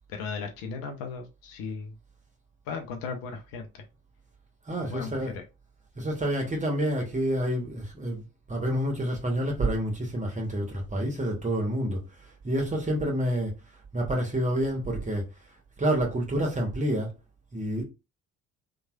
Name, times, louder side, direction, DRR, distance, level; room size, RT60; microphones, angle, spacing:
voice 1, 0.1-1.9 2.7-3.8 4.7-5.4, left 5 dB, 55° left, 0.7 m, -36 dB
voice 2, 4.7-5.3 6.0-13.5 13.9-15.3 15.8-17.1 17.5-17.8, right 1 dB, 15° right, 1.1 m, -28 dB
2.9 x 2.3 x 2.5 m
figure-of-eight pair, 45°, 42 cm